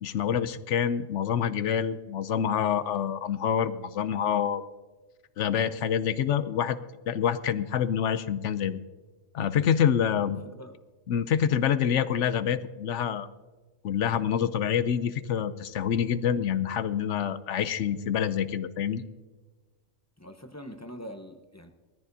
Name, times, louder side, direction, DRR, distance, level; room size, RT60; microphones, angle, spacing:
voice 1, 0.0-4.7 5.4-6.8 7.1-8.8 9.3-10.4 11.1-13.3 13.8-19.0, left 8 dB, 70° left, 13 dB, 0.9 m, -27 dB
voice 2, 10.2-10.8 20.2-21.7, equal, 15° left, 6 dB, 0.7 m, -44 dB
20.0 x 14.0 x 2.7 m, 1.3 s
omnidirectional pair, 1.3 m